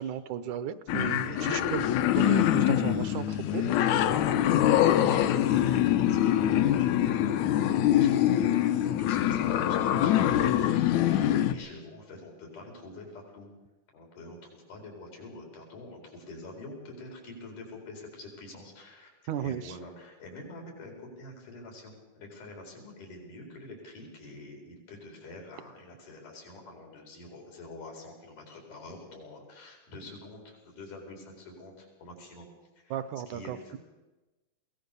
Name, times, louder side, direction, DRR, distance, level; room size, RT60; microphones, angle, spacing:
voice 1, 0.0-1.8 2.2-3.6 19.3-19.8 32.9-33.8, right 9 dB, 75° right, 14 dB, 2.3 m, -34 dB
sound 1, 0.9-11.5, left 11 dB, 75° left, 2.1 m, -24 dB
voice 2, 1.2-1.9 3.4-13.5 13.9-32.5 32.8-33.0 33.3-33.8, left 2 dB, 90° left, 2 dB, 6.4 m, -45 dB
22.0 x 18.0 x 6.9 m, 1.1 s
omnidirectional pair, 3.5 m